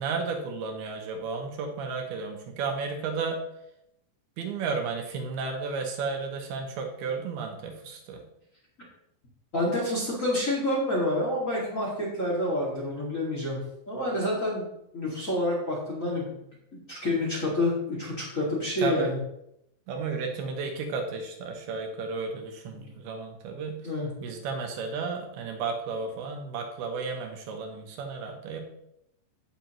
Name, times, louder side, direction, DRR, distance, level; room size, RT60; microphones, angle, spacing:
voice 1, 0.0-3.4 4.4-8.2 18.8-19.1 19.9-23.8 24.2-28.6, right 4 dB, 75° right, 3 dB, 2.6 m, -33 dB
voice 2, 9.5-13.6 13.9-14.6 14.9-19.2 22.8-22.9 23.8-24.1, left 1 dB, 40° left, -5 dB, 1.1 m, -28 dB
15.5 x 5.7 x 3.0 m, 0.79 s
omnidirectional pair, 5.1 m